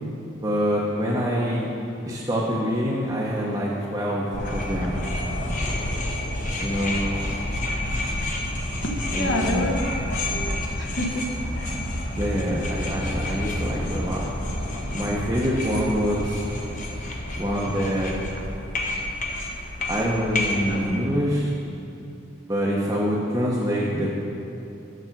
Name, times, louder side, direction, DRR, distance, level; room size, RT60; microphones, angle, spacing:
voice 1, 0.3-1.7 2.0-4.9 6.6-7.0 9.1-9.7 12.2-14.2 14.9-16.4 17.4-18.2 19.9-21.5 22.5-24.2, equal, 20° right, -6 dB, 0.8 m, -25 dB
sound 1, 4.3-20.9, left 1 dB, 40° left, 0.9 m, -29 dB
voice 2, 8.8-9.8 10.1-11.9, left 1 dB, 60° left, 1 dB, 1.1 m, -29 dB
7.0 x 6.9 x 5.8 m, 2.7 s
head